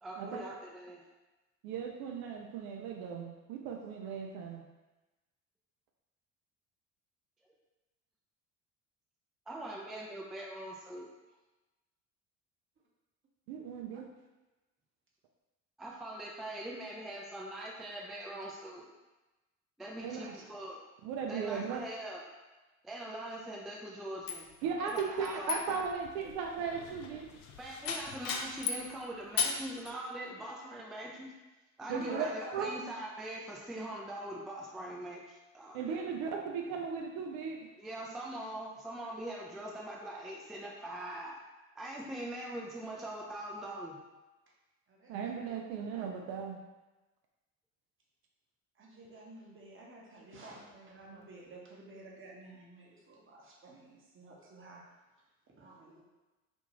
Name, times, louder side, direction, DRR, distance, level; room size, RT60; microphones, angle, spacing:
voice 1, 0.0-1.0 9.5-11.1 15.8-18.9 19.8-20.8 21.3-22.3 22.8-24.5 24.8-25.6 27.6-31.3 31.8-35.9 37.8-41.4 41.7-44.0, right 1 dB, ahead, -3 dB, 0.3 m, -42 dB
voice 2, 1.6-4.6 13.5-14.1 20.0-20.3 21.0-21.8 24.6-27.3 31.9-32.3 32.5-32.7 35.7-37.6 45.1-46.6, right 6 dB, 65° right, 1 dB, 0.5 m, -37 dB
sound 1, 24.3-28.9 29.4-29.9, left 6 dB, 60° left, 0.5 m, -37 dB
voice 3, 31.9-32.6 44.9-45.4 45.7-46.2 48.7-54.8 55.6-56.0, right 2 dB, 30° right, -2 dB, 0.9 m, -51 dB
2.6 x 2.4 x 3.0 m, 1.1 s
hypercardioid pair, 65°, 39 cm